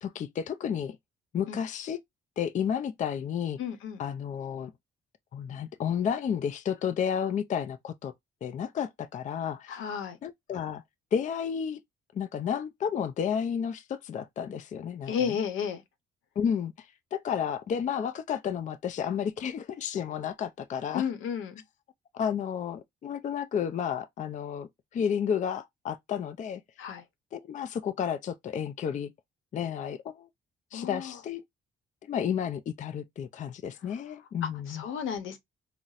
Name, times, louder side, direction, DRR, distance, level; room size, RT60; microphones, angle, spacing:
voice 1, 0.0-1.0 1.3-2.0 2.4-3.6 4.0-4.7 5.3-8.1 8.4-9.8 10.2-10.8 11.1-11.8 12.1-15.4 16.4-21.1 22.1-26.6 27.3-29.1 29.5-30.3 30.7-31.4 32.1-34.8, left 8 dB, 40° left, 0.4 m, -32 dB
voice 2, 3.6-4.0 9.7-10.2 15.1-15.8 20.9-21.6 26.8-27.0 30.7-31.1 34.4-35.4, left 7 dB, 85° left, 0.8 m, -32 dB
3.9 x 2.1 x 2.4 m
cardioid pair, 90°, 20 cm